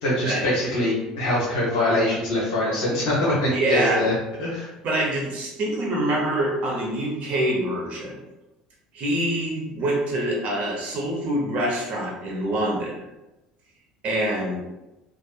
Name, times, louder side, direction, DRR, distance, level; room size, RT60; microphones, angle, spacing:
voice 1, 0.0-4.1 4.4-4.7, left 1 dB, 75° left, -8 dB, 0.7 m, -23 dB
voice 2, 3.4-4.1 4.8-8.2 8.9-12.9 14.0-14.6, right 1 dB, 55° right, -2 dB, 0.9 m, -25 dB
2.8 x 2.3 x 2.3 m, 0.98 s
hypercardioid pair, 65°, 3 cm